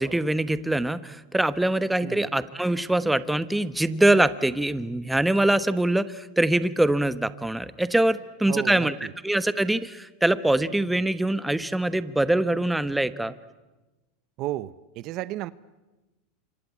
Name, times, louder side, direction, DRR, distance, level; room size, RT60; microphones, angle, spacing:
voice 1, 0.0-8.9 9.2-13.3, right 1 dB, 5° right, 14 dB, 1.1 m, -23 dB
voice 2, 8.5-9.1 14.4-15.5, right 15 dB, 50° right, 17 dB, 0.9 m, -33 dB
27.0 x 25.0 x 8.5 m, 1.1 s
supercardioid pair, 115°, 0 cm